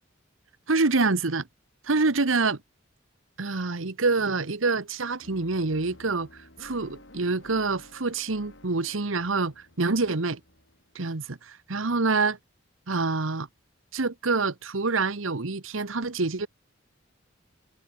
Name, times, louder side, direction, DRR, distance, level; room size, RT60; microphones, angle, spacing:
voice 1, 0.7-1.5 1.8-2.6 3.4-6.3 6.6-10.4 10.9-12.4 12.9-13.5 13.9-16.5, right 3 dB, 80° right, 1.3 m, -26 dB
sound 1, 5.2-11.3, left 1 dB, 65° left, 5.3 m, -52 dB
head